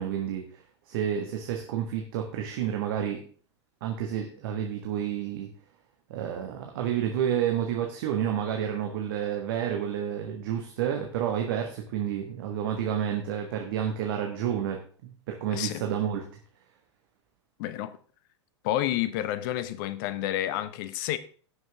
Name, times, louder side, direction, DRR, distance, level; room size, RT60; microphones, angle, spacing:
voice 1, 0.0-3.2 3.8-5.5 6.1-16.2, right 9 dB, 50° right, 1.6 m, -30 dB
voice 2, 15.5-15.8 17.6-18.0 18.6-21.2, left 13 dB, 45° left, 0.8 m, -30 dB
16.5 x 6.3 x 3.5 m
figure-of-eight pair, 95°, 15 cm